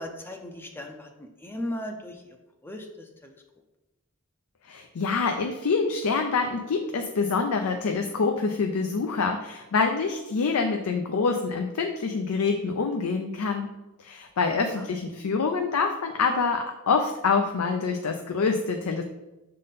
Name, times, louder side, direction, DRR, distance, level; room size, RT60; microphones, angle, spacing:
voice 1, 0.0-2.4 2.6-3.3 14.8-14.9, left 1 dB, 10° left, 4 dB, 0.5 m, -37 dB
voice 2, 4.6-13.7 14.0-19.0, left 4 dB, 80° left, 4 dB, 0.5 m, -26 dB
6.4 x 3.8 x 4.0 m, 1.0 s
head